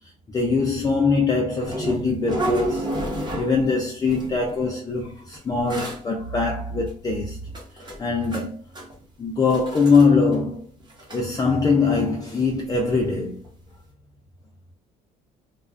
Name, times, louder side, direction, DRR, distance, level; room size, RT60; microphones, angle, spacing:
voice 1, 0.3-2.9 3.3-7.4 8.0-8.6 9.2-10.6 11.1-13.4, left 4 dB, 20° left, 0.4 m, -22 dB
sound 1, 1.6-3.8 4.1-4.5 5.3-5.4 5.7-6.0 6.9-7.0 7.5-8.5 8.8-9.0 9.5-10.1 10.3-10.4 10.8-11.2 12.9-13.0 13.4-13.5, right 1 dB, 25° right, 0.8 m, -30 dB
2.4 x 2.2 x 2.4 m
cardioid pair, 110°, 17 cm